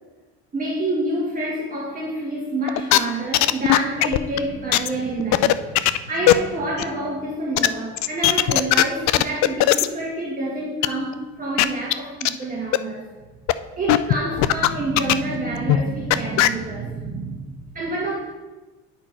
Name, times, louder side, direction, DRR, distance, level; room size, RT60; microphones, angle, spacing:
voice 1, 0.5-13.1 13.8-18.2, right 2 dB, 30° right, -4 dB, 1.7 m, -28 dB
sound 1, 2.7-3.0 3.3-4.4 4.7-4.9 5.2-6.0 6.3-6.4 6.8-6.9 7.6-7.7 8.0-9.9 10.8-10.9 11.1-11.2 11.6-11.7 11.9-12.0 12.2-12.3 12.7-12.8 13.5-13.6 13.9-14.7 15.0-15.4 15.7-15.8 16.1-16.5, left 15 dB, 65° left, 0.4 m, -16 dB
10.0 x 4.4 x 4.5 m, 1.2 s
cardioid pair, 110°, 29 cm